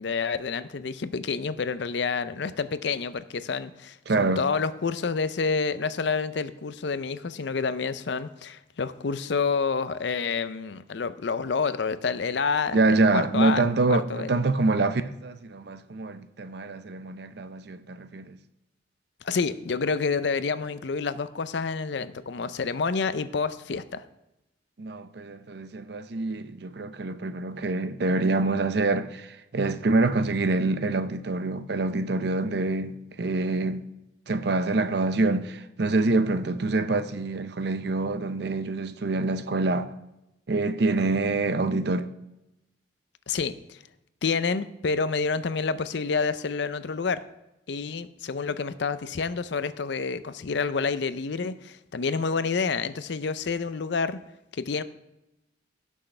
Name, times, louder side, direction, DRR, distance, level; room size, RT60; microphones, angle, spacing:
voice 1, 0.0-13.6 13.9-14.3 19.2-24.0 43.3-43.8 44.2-47.2 47.7-54.2 54.5-54.8, left 5 dB, 65° left, 0.5 m, -28 dB
voice 2, 4.1-4.4 12.7-18.4 24.8-33.8 34.3-39.9 40.5-42.1, right 3 dB, 60° right, 0.6 m, -26 dB
17.0 x 6.3 x 3.3 m
head